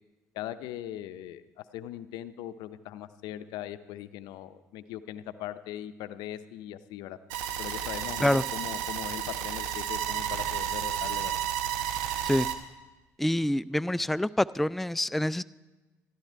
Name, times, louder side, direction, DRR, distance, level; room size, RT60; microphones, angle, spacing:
voice 1, 0.3-7.2 7.6-11.4, left 12 dB, 75° left, 13 dB, 0.6 m, -40 dB
sound 1, 7.3-12.6, right 10 dB, 80° right, 0.9 m, -32 dB
voice 2, 13.2-15.4, left 1 dB, ahead, 17 dB, 0.3 m, -26 dB
13.5 x 12.0 x 4.6 m, 1.2 s
hypercardioid pair, 55°, 7 cm